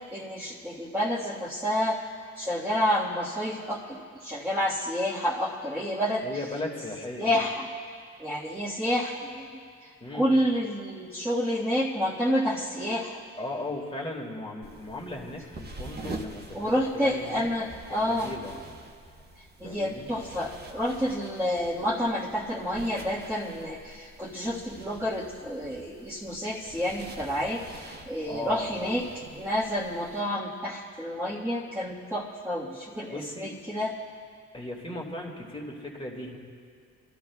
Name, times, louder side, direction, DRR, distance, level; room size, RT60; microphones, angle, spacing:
voice 1, 0.1-2.0 2.3-6.3 7.2-7.7 8.2-13.2 16.5-18.3 19.6-29.0 29.3-33.9, equal, 10° right, -8 dB, 1.5 m, -29 dB
voice 2, 6.2-7.3 10.0-10.5 13.4-17.5 17.9-18.5 19.6-20.1 28.3-29.0 33.1-33.5 34.5-36.4, left 2 dB, 20° left, 0 dB, 2.1 m, -37 dB
sound 1, 14.6-30.2, right 2 dB, 35° right, 1.2 m, -46 dB
24.5 x 13.0 x 2.3 m, 2.2 s
cardioid pair, 90°, 30 cm